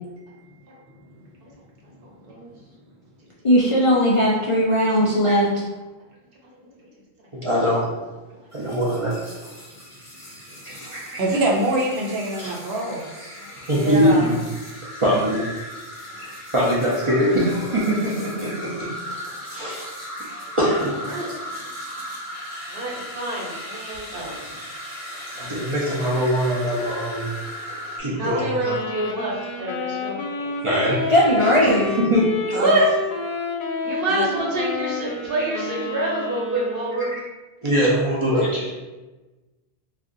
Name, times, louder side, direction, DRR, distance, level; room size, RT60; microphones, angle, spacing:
voice 1, 2.0-2.5 6.6-6.7 8.3-8.4 10.7-10.8 13.4-14.3 19.1-19.2 19.6-19.7 20.1-20.6 21.1-21.6 22.7-24.6 28.2-30.2 32.5-32.9 33.8-37.1 38.4-38.6, right 1 dB, 65° right, -4 dB, 1.0 m, -27 dB
voice 2, 3.4-5.5 31.1-31.9, equal, 50° left, -6 dB, 0.4 m, -18 dB
voice 3, 7.3-7.9 8.5-9.2 10.6-11.2 12.4-12.5 13.7-14.4 14.7-15.4 16.2-18.9 19.4-19.9 20.6-21.0 25.4-27.3 28.0-28.6 30.4-31.0 31.4-32.6 37.6-38.7, equal, 40° right, -7 dB, 0.5 m, -22 dB
sound 1, 8.5-28.0, equal, 20° left, 0.7 m, -37 dB
voice 4, 11.2-13.3 32.5-32.8 34.1-34.2, right 1 dB, 90° right, -1 dB, 1.0 m, -24 dB
Wind instrument woodwind instrument, 28.6-37.1, left 4 dB, 65° left, 0.8 m, -30 dB
2.5 x 2.4 x 3.7 m, 1.2 s
omnidirectional pair, 1.0 m